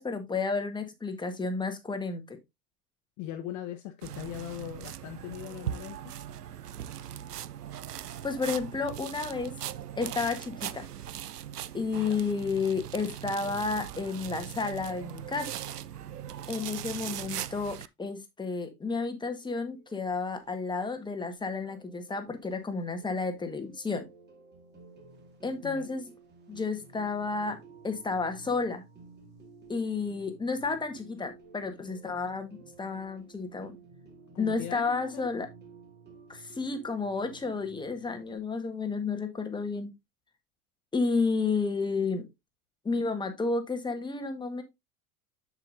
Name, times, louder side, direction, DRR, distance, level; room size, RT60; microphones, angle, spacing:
voice 1, 0.0-2.4 8.2-9.5 10.0-10.9 11.7-15.6 16.5-24.0 25.4-26.1 26.5-27.6 27.8-28.8 29.7-33.8 34.4-35.5 36.3-39.9 40.9-42.2 42.8-44.6, left 4 dB, 10° left, 1.5 m, -31 dB
voice 2, 3.2-6.1 11.9-12.2 25.6-25.9 34.3-35.3, left 11 dB, 40° left, 0.9 m, -40 dB
sound 1, 4.0-17.9, right 10 dB, 90° right, 0.5 m, -40 dB
sound 2, 19.4-38.4, right 4 dB, 20° right, 2.3 m, -53 dB
7.3 x 7.0 x 2.7 m
figure-of-eight pair, 90°, 45 cm